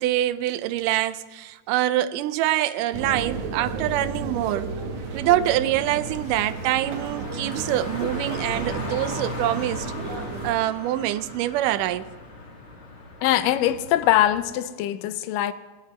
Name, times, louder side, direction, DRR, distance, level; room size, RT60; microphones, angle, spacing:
voice 1, 0.0-4.7 5.1-9.9 10.4-12.1, right 14 dB, 85° right, 2.1 m, -25 dB
sound 1, 2.9-10.5, right 4 dB, 65° right, 2.4 m, -33 dB
Car, 4.9-14.5, left 2 dB, 40° left, 2.8 m, -38 dB
voice 2, 13.2-15.5, left 13 dB, 85° left, 2.3 m, -22 dB
20.5 x 16.5 x 3.1 m
omnidirectional pair, 3.8 m